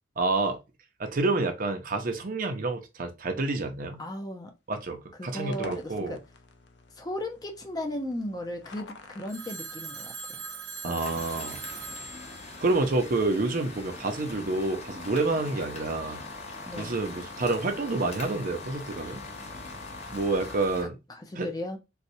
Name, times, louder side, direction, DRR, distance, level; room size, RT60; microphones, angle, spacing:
voice 1, 0.2-0.6 1.0-4.0 4.7-6.2 10.8-11.6 12.6-16.2 16.7-19.2 20.1-21.0 21.4-21.5, right 2 dB, 50° right, 0.6 m, -28 dB
voice 2, 4.0-4.5 5.2-6.2 7.0-10.4 10.9-11.1 15.5-15.7 16.7-17.0 21.1-21.8, left 1 dB, 20° left, 0.6 m, -36 dB
sound 1, 5.5-20.7, left 4 dB, 65° left, 0.5 m, -46 dB
Telephone, 9.3-13.5, right 5 dB, 75° right, 1.1 m, -41 dB
sound 2, 11.0-20.8, left 2 dB, 35° left, 1.0 m, -44 dB
4.0 x 2.3 x 2.6 m
head